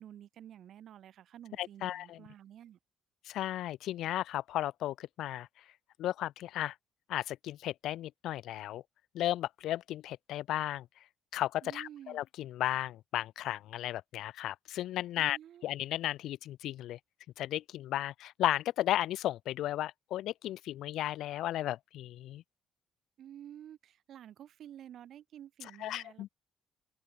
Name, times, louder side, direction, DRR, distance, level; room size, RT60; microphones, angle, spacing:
voice 1, 0.0-2.8 11.6-12.2 15.2-15.6 23.2-26.3, right 10 dB, 55° right, 3.4 m, -51 dB
voice 2, 1.6-2.2 3.2-5.5 6.0-6.7 7.1-8.8 9.1-10.9 11.3-15.4 15.6-17.0 17.4-22.4 25.8-26.3, left 13 dB, 85° left, 0.5 m, -34 dB
cardioid pair, 180°, 0 cm